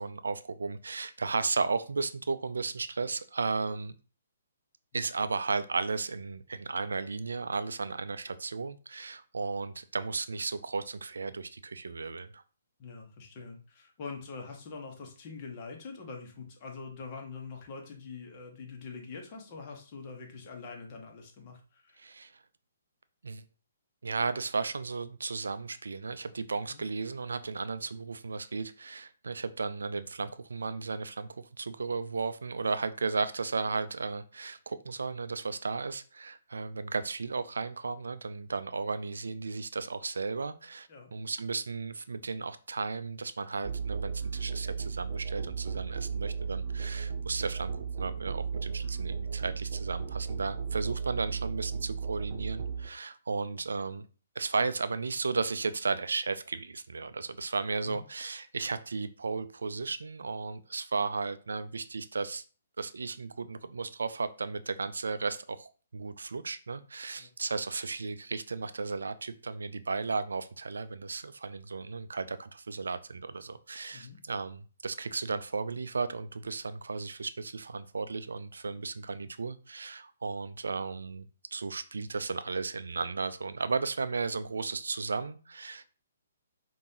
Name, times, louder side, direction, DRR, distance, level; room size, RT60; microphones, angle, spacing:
voice 1, 0.0-4.0 4.9-12.4 22.0-22.3 23.2-23.4 24.0-54.0 54.4-62.4 62.8-85.9, right 4 dB, 75° right, 12 dB, 0.3 m, -34 dB
voice 2, 12.8-22.0 26.7-26.8 30.2-30.3 40.9-41.1 57.8-58.0 67.2-67.3 73.9-74.2, left 4 dB, 35° left, 1 dB, 1.1 m, -44 dB
Musical instrument, 43.6-52.9, right 6 dB, 40° right, 0.9 m, -35 dB
5.1 x 2.6 x 2.9 m, 0.37 s
figure-of-eight pair, 130°, 0 cm